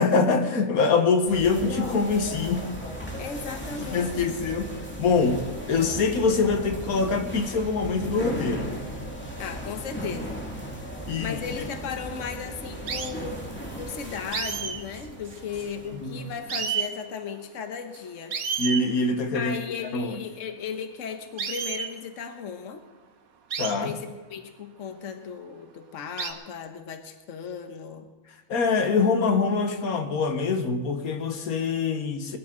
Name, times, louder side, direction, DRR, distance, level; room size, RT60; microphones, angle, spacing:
voice 1, 0.0-2.7 3.8-8.7 11.0-11.4 16.0-16.2 18.6-19.5 19.8-20.2 23.6-24.0 28.5-32.4, left 4 dB, 80° left, 6 dB, 1.6 m, -24 dB
sound 1, 1.3-16.6, equal, 10° left, 2.3 m, -37 dB
voice 2, 3.2-4.4 9.4-10.4 11.2-13.4 13.8-18.4 19.3-22.8 23.8-28.1, left 6 dB, 60° left, 6 dB, 1.3 m, -36 dB
sound 2, 11.9-12.2 12.9-13.1 14.3-15.9 16.2-16.3 16.5-16.9 17.9-18.0 18.3-18.9 21.4-21.9 23.5-23.8 24.9-25.0 26.2-26.3, right 7 dB, 80° right, 1.5 m, -31 dB
21.5 x 13.0 x 3.8 m, 1.2 s
omnidirectional pair, 1.5 m